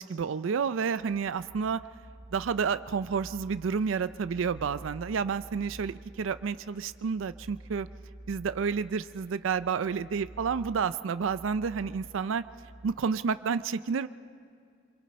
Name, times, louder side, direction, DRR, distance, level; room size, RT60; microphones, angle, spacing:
voice 1, 0.0-1.8 2.3-7.9 8.3-12.4 12.8-14.1, right 6 dB, 85° right, 14 dB, 0.4 m, -30 dB
sound 1, 0.9-12.9, right 1 dB, 45° right, 4.0 m, -50 dB
27.0 x 23.5 x 4.3 m, 2.1 s
head